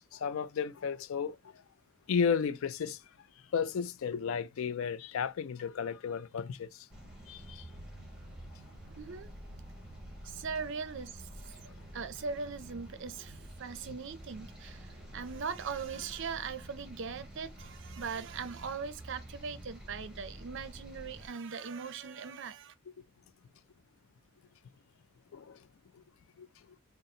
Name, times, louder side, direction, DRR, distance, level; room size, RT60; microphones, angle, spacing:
voice 1, 0.0-1.4 2.1-3.0 3.5-6.7 7.3-7.6 25.3-25.6, left 6 dB, 65° left, 0.4 m, -33 dB
sound 1, 6.9-21.3, right 1 dB, 5° right, 1.1 m, -49 dB
voice 2, 9.0-9.3 10.2-22.7, right 5 dB, 55° right, 0.5 m, -40 dB
4.0 x 2.0 x 3.8 m
head